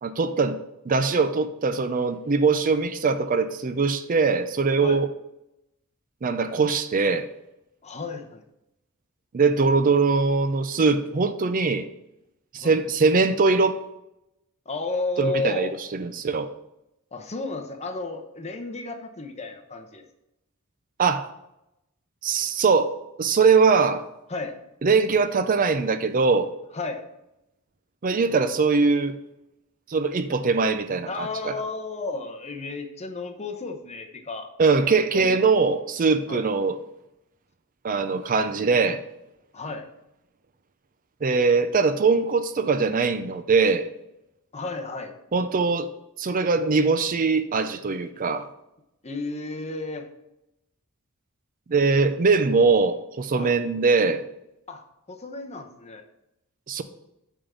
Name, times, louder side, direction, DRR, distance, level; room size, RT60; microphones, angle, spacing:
voice 1, 0.0-0.6 0.9-5.1 6.2-7.3 9.3-11.9 12.5-13.8 15.2-16.5 21.0-21.3 22.2-24.0 24.8-26.5 28.0-29.2 29.9-31.6 34.6-36.8 37.8-39.0 41.2-43.9 45.3-45.9 46.2-48.5 51.7-54.2 56.7-56.8, right 4 dB, 40° right, 0.5 m, -22 dB
voice 2, 7.8-8.4 12.6-12.8 14.7-15.7 17.1-20.0 24.3-24.5 26.7-27.0 31.1-34.5 35.1-35.4 36.3-36.4 39.5-39.9 44.5-45.2 49.0-50.1 53.4-53.5 54.7-56.0, left 3 dB, 30° left, 0.9 m, -32 dB
8.8 x 3.7 x 6.9 m
head